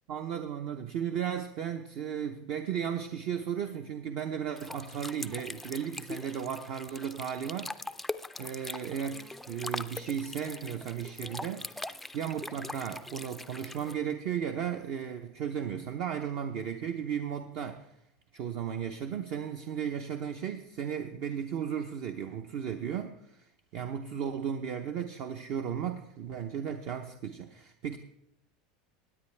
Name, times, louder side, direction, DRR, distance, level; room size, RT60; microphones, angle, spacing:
voice 1, 0.1-7.8 8.4-17.9 18.3-23.5 23.7-28.0, right 8 dB, 55° right, 6 dB, 0.7 m, -35 dB
sound 1, 4.6-13.9, left 2 dB, 5° left, 0.3 m, -42 dB
17.0 x 9.7 x 3.3 m, 0.78 s
supercardioid pair, 130°, 4 cm